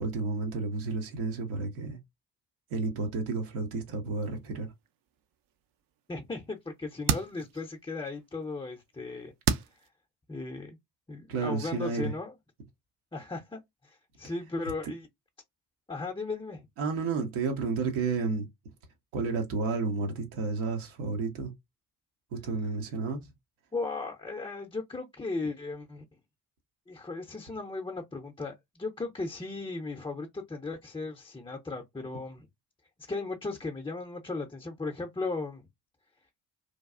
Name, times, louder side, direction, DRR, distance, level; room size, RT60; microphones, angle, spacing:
voice 1, 0.0-2.0 2.7-4.7 11.3-12.1 16.8-18.5 19.1-21.5 22.3-23.2, right 4 dB, 75° right, 1.0 m, -31 dB
sound 1, 4.3-9.9, right 7 dB, 45° right, 0.5 m, -36 dB
voice 2, 6.1-9.3 9.8-9.9 10.3-10.8 11.1-12.3 13.1-15.1 15.9-16.7 23.7-26.0 26.9-32.5 33.1-35.7, left 3 dB, 10° left, 0.5 m, -36 dB
3.1 x 2.3 x 2.4 m
hypercardioid pair, 45°, 48 cm